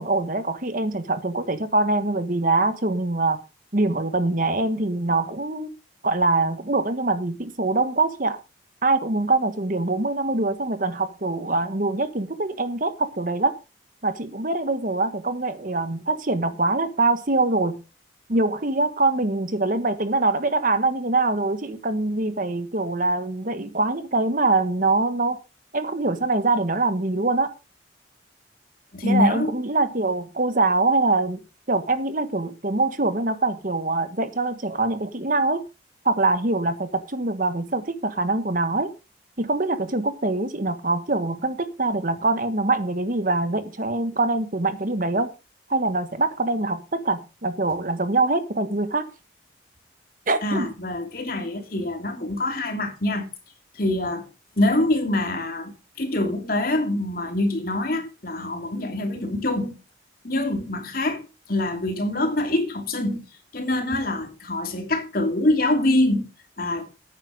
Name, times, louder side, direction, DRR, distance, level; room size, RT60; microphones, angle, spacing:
voice 1, 0.0-3.4 3.7-5.7 6.0-8.4 8.8-13.6 14.0-17.8 18.3-25.4 25.7-27.5 29.0-31.4 31.7-35.6 36.0-38.9 39.4-45.3 45.7-49.1 50.3-50.7, right 2 dB, 45° right, 1.4 m, -24 dB
voice 2, 28.9-29.5 50.4-53.3 53.7-54.3 54.6-59.8 60.2-63.3 63.5-66.3 66.6-66.9, left 1 dB, 50° left, 2.8 m, -25 dB
10.5 x 9.5 x 5.1 m
head